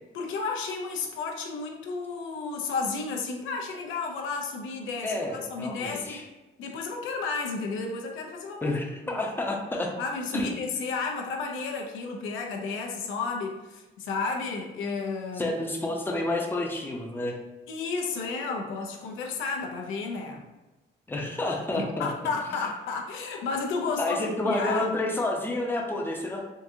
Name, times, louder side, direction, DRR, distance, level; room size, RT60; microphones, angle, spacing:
voice 1, 0.1-6.2 6.6-8.8 9.0-9.2 10.0-15.5 17.7-20.5 21.7-24.9, left 4 dB, 90° left, 1 dB, 0.6 m, -32 dB
voice 2, 5.0-6.2 8.6-9.9 10.3-10.5 15.4-17.4 21.1-22.1 24.0-26.5, left 2 dB, 10° left, 0 dB, 0.6 m, -29 dB
3.7 x 2.6 x 2.6 m, 1.1 s
cardioid pair, 90°, 20 cm